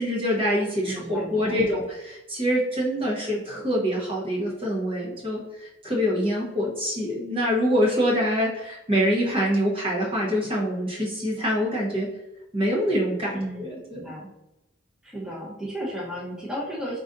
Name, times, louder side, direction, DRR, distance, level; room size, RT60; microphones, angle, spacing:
voice 1, 0.0-12.1 12.5-14.1, equal, 25° right, -5 dB, 1.0 m, -25 dB
voice 2, 0.8-1.6 13.3-13.6 13.9-14.3 15.0-17.0, equal, 5° right, -6 dB, 0.9 m, -34 dB
4.9 x 3.8 x 2.6 m, 0.95 s
head